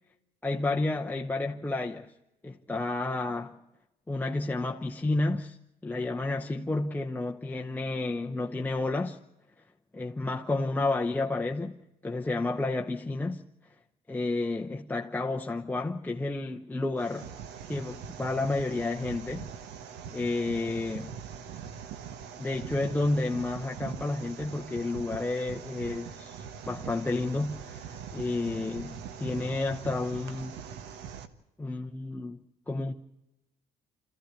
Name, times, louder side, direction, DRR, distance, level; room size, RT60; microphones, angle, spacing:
voice 1, 0.4-2.1 2.4-3.6 4.1-5.6 5.8-9.2 9.9-11.8 12.0-13.4 14.1-17.3 17.7-19.5 20.1-21.2 22.4-26.4 26.7-30.6 31.6-32.4 32.7-32.9, left 2 dB, 10° left, 0.9 m, -31 dB
sound 1, 17.0-31.3, right 7 dB, 85° right, 1.4 m, -42 dB
26.5 x 14.5 x 8.2 m
cardioid pair, 110°, 17 cm